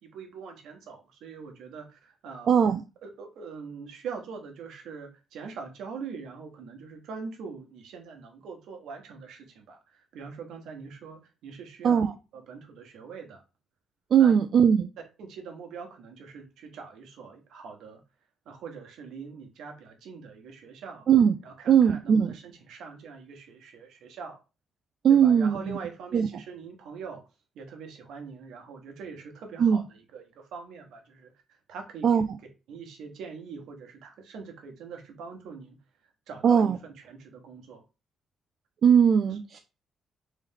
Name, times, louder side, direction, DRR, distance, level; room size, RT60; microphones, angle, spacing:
voice 1, 0.0-2.5 3.0-13.4 14.2-14.3 15.2-18.0 18.4-21.0 21.4-24.4 25.1-27.2 27.5-31.3 31.7-32.2 32.7-35.8 36.3-37.8 39.3-39.4, right 5 dB, 80° right, 3 dB, 1.2 m, -43 dB
voice 2, 2.5-2.8 11.8-12.1 14.1-14.9 21.1-21.4 21.7-22.3 25.0-25.8 26.1-26.3 29.6-29.8 32.0-32.2 36.4-36.8 38.8-39.6, right 8 dB, 60° right, 7 dB, 0.3 m, -20 dB
3.3 x 3.1 x 3.6 m, 0.30 s
cardioid pair, 90°, 0 cm